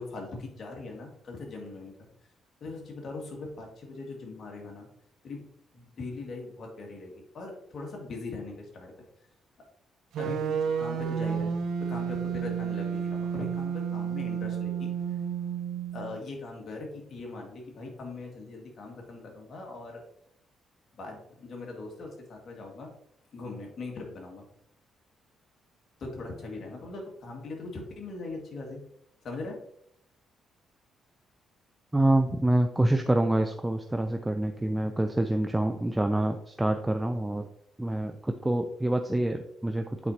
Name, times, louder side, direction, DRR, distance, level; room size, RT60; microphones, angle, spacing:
voice 1, 0.0-2.0 2.6-4.9 5.2-5.5 5.7-8.9 10.2-11.6 11.9-14.9 15.9-20.0 20.9-22.9 23.3-24.5 26.0-28.8 29.2-29.6, left 3 dB, 55° left, 0 dB, 1.9 m, -40 dB
sound 1, 10.1-16.2, right 7 dB, 75° right, 0.6 m, -31 dB
voice 2, 31.9-37.5 37.8-40.1, right 1 dB, 10° right, 5 dB, 0.5 m, -26 dB
8.4 x 4.3 x 2.8 m, 0.72 s
cardioid pair, 90°, 0 cm